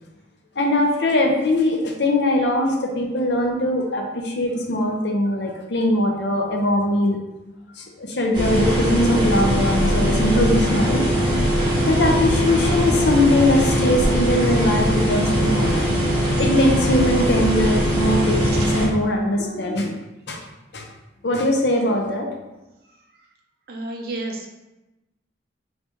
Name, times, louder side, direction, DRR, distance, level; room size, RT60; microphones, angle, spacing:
voice 1, 0.6-7.2 7.8-11.0 11.8-15.8 16.4-19.9 20.3-20.4 20.7-20.8 21.2-22.3, left 1 dB, 65° left, 2 dB, 0.7 m, -21 dB
sound 1, 8.3-18.9, equal, 25° right, 1.3 m, -20 dB
voice 2, 23.7-24.5, right 2 dB, 55° right, 2 dB, 0.6 m, -31 dB
3.9 x 3.0 x 3.5 m, 1.0 s
head